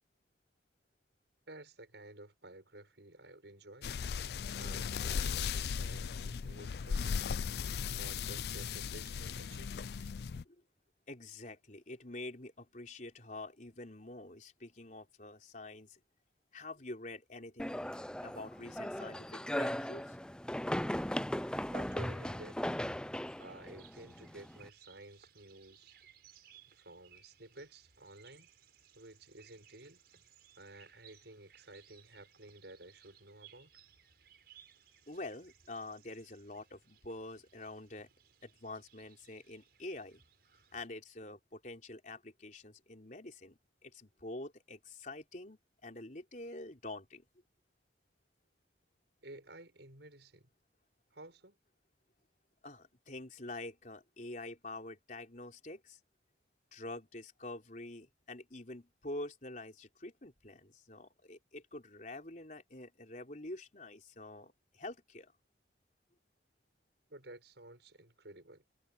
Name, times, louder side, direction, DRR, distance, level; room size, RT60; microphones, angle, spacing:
voice 1, 1.5-3.9 4.5-7.3 7.9-10.1 21.7-22.6 23.4-25.9 26.7-28.5 28.9-30.0 30.6-33.7 49.2-50.5 51.1-51.6 67.1-68.6, right 2 dB, 75° right, 6.2 m, -53 dB
sound 1, 3.8-10.4, left 6 dB, 60° left, 0.4 m, -37 dB
voice 2, 11.1-16.0 16.5-17.9 18.2-20.2 35.1-38.1 38.4-40.2 40.7-47.2 52.6-56.0 56.7-65.3, left 2 dB, 45° left, 4.2 m, -46 dB
sound 2, 17.6-24.7, left 1 dB, 5° left, 0.5 m, -38 dB
sound 3, 23.3-40.9, right 9 dB, 55° right, 6.7 m, -63 dB
head